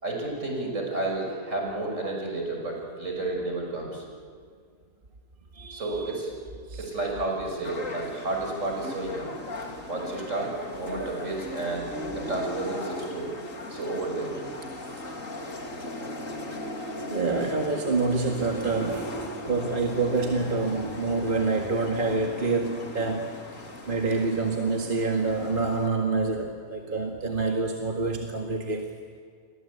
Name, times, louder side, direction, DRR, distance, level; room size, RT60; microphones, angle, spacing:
voice 1, 0.0-4.1 5.7-6.3 6.8-9.3 9.9-13.3 13.7-14.6 15.3-15.5 26.8-27.0, right 2 dB, 60° right, 0 dB, 6.5 m, -32 dB
voice 2, 5.5-6.1 6.7-6.8 17.1-19.1 19.4-23.3 23.9-28.9, right 3 dB, 35° right, 1 dB, 2.0 m, -27 dB
sound 1, 7.6-25.9, left 1 dB, 65° left, 3.1 m, -38 dB
29.5 x 23.5 x 8.5 m, 2.2 s
omnidirectional pair, 1.5 m